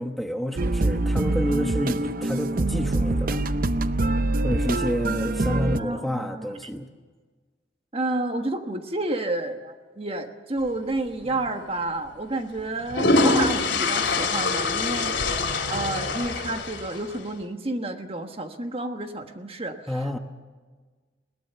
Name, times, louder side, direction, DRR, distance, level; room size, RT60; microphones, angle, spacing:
voice 1, 0.0-3.4 4.4-6.9 19.9-20.2, equal, ahead, 4 dB, 1.1 m, -29 dB
sound 1, 0.6-5.8, right 2 dB, 50° right, 0.6 m, -24 dB
voice 2, 5.8-6.5 7.9-15.2 15.7-20.2, right 2 dB, 30° right, 6 dB, 1.4 m, -30 dB
sound 2, 11.2-11.4 12.6-17.2, left 3 dB, 75° left, 3.5 m, -24 dB
21.5 x 18.5 x 6.9 m, 1.4 s
head